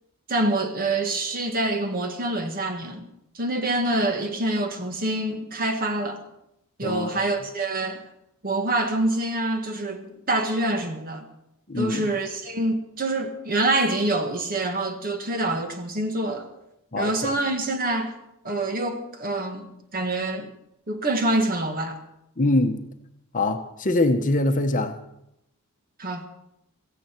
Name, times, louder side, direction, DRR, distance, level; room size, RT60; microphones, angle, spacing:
voice 1, 0.3-3.1 3.3-6.2 6.8-8.0 8.4-11.2 11.8-16.5 17.0-18.1 18.4-20.5 20.9-22.0 26.0-26.2, right 2 dB, 40° right, 1.6 m, -26 dB
voice 2, 6.8-7.2 11.7-12.1 16.9-17.3 22.4-22.8 23.3-25.0, left 2 dB, 35° left, 1.0 m, -23 dB
16.5 x 15.0 x 4.5 m
head